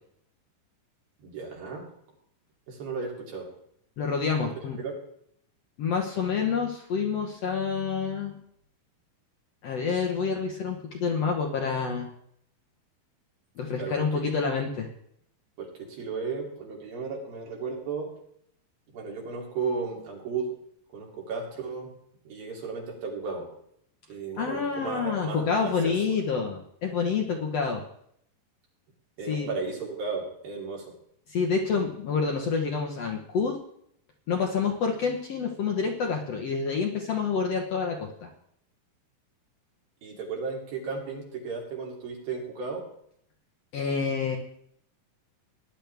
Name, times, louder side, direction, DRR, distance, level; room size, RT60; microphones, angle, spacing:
voice 1, 1.2-1.9 2.7-3.5 4.4-4.5 4.8-4.9 13.8-14.0 15.6-18.1 18.9-20.5 20.9-21.9 22.3-23.5 24.1-26.2 29.2-30.9 40.0-42.8, right 4 dB, 80° right, -2 dB, 4.8 m, -34 dB
voice 2, 4.0-4.8 5.8-8.4 9.6-12.1 13.6-14.9 24.4-27.8 29.3-29.5 31.3-33.6 34.3-38.3 43.7-44.4, left 5 dB, 65° left, 1 dB, 1.7 m, -28 dB
18.5 x 10.5 x 3.5 m, 0.70 s
omnidirectional pair, 4.1 m